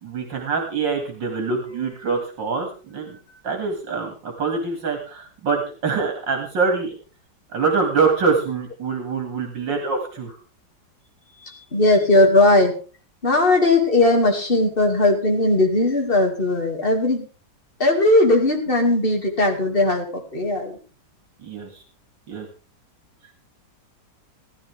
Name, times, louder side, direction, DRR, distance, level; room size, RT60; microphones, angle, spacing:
voice 1, 0.0-3.2 3.4-6.9 7.5-10.4 21.4-21.8 22.3-22.5, right 4 dB, 80° right, 3 dB, 2.9 m, -24 dB
voice 2, 11.4-12.8 13.2-17.3 17.8-20.8, left 2 dB, 30° left, 2 dB, 2.5 m, -18 dB
15.5 x 13.0 x 3.5 m, 0.37 s
omnidirectional pair, 2.0 m